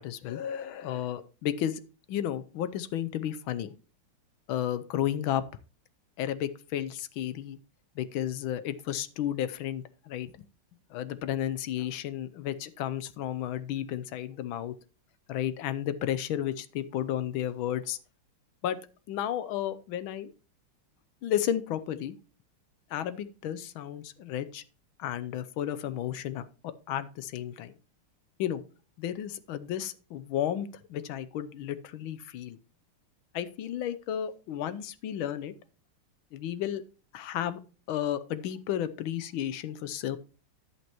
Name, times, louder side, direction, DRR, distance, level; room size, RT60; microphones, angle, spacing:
voice 1, 0.0-1.8 2.1-3.7 4.5-5.4 6.2-7.6 8.0-10.3 10.9-14.7 15.3-18.0 18.6-18.8 19.1-20.3 21.2-22.1 22.9-24.6 25.0-27.7 28.4-28.6 29.0-32.6 33.3-35.5 36.3-36.8 37.1-37.6 37.9-40.2, left 11 dB, 75° left, 14 dB, 1.4 m, -33 dB
10.5 x 8.4 x 3.0 m, 0.35 s
omnidirectional pair, 2.4 m